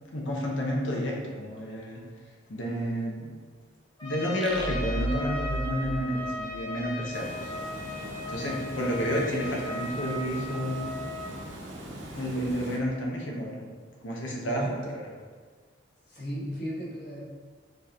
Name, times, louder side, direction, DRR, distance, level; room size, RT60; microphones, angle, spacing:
voice 1, 0.1-2.0 2.5-3.3 4.0-7.5 8.3-10.9 12.1-13.7 14.0-15.1, equal, 80° left, -2 dB, 0.8 m, -31 dB
Trumpet, 4.0-11.3, left 2 dB, 20° left, 0.9 m, -37 dB
sound 1, 4.4-7.0, right 1 dB, ahead, 0.4 m, -34 dB
Water, 7.1-12.8, right 1 dB, 75° right, 0.8 m, -41 dB
voice 2, 14.4-14.8 16.1-17.2, equal, 55° left, -5 dB, 1.3 m, -35 dB
4.5 x 3.2 x 3.5 m, 1.5 s
head